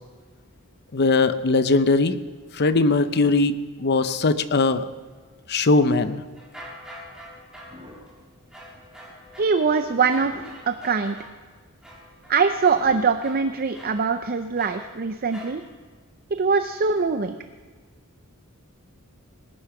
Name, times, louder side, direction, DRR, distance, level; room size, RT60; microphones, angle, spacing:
voice 1, 0.9-2.2 2.5-4.9 5.5-6.2, left 3 dB, 50° left, 11 dB, 0.7 m, -20 dB
sound 1, 6.3-11.4 11.8-15.7, equal, 5° right, 3.4 m, -45 dB
sound 2, 7.7-9.0 9.8-9.9 10.2-10.8 11.6-11.7 12.7-13.1, left 1 dB, 25° right, 3.5 m, -45 dB
voice 2, 9.4-11.2 12.3-15.6 16.4-17.4, right 5 dB, 45° right, 9 dB, 0.6 m, -22 dB
19.0 x 10.0 x 5.9 m, 1.5 s
head